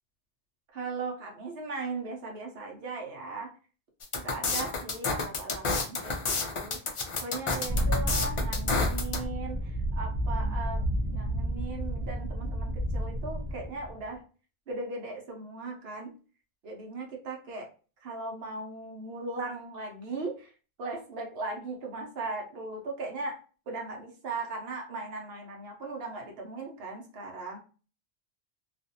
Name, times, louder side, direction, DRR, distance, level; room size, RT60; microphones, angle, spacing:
voice 1, 0.7-3.5 4.2-6.8 7.2-10.8 11.1-14.2 14.7-16.1 16.6-17.7 18.0-20.5 20.8-23.4 23.7-27.6, right 3 dB, 70° right, 0 dB, 1.0 m, -38 dB
sound 1, 4.0-9.2, left 4 dB, 50° left, 0.3 m, -30 dB
sound 2, 7.7-14.0, equal, 40° right, 0.7 m, -31 dB
2.4 x 2.4 x 2.7 m, 0.36 s
omnidirectional pair, 1.1 m